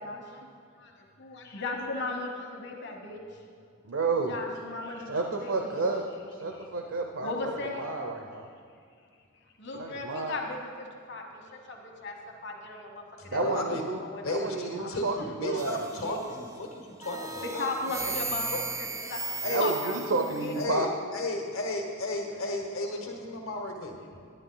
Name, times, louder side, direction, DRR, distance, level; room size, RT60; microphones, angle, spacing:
voice 1, 0.0-0.5 0.8-0.9 1.2-3.2 4.3-5.8 6.5-6.7 7.2-7.9 9.6-12.2 12.4-14.2 14.8-15.0 15.5-15.6 16.0-16.2 17.4-18.4 18.8-20.0 20.4-20.5 24.0-24.3, left 3 dB, 55° left, 2 dB, 1.2 m, -37 dB
voice 2, 3.8-4.3 5.1-6.0 6.4-7.5 7.8-8.5 9.7-10.4 13.3-14.0 14.3-15.8 19.5-20.9, right 3 dB, 75° right, 3 dB, 0.7 m, -30 dB
voice 3, 13.2-13.8 14.2-17.7 18.0-18.1 18.5-18.6 19.4-19.7 20.5-23.9, left 2 dB, 75° left, 2 dB, 1.3 m, -34 dB
sound 1, 15.6-16.5 17.0-20.6, right 3 dB, 15° right, 0.4 m, -36 dB
10.5 x 10.0 x 3.9 m, 2.3 s
head